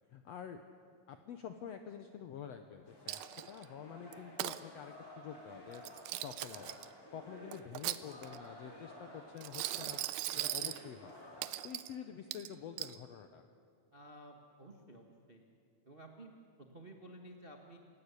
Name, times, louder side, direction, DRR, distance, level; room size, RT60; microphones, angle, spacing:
voice 1, 0.1-0.6 1.1-3.2 3.5-5.8 6.2-6.8 7.1-10.0 10.3-11.3 11.6-13.4, left 8 dB, 75° left, 7 dB, 1.5 m, -48 dB
sound 1, 2.8-11.5, left 1 dB, 25° left, 4.0 m, -53 dB
Coin (dropping), 3.1-3.6 4.1-4.6 5.7-6.9 7.5-8.4 9.4-10.8 11.4-11.9 12.3-13.0, right 16 dB, 90° right, 2.6 m, -39 dB
voice 2, 13.9-15.4 15.8-17.8, right 1 dB, 55° right, 2 dB, 0.6 m, -54 dB
28.5 x 17.0 x 8.4 m, 2.3 s
omnidirectional pair, 4.1 m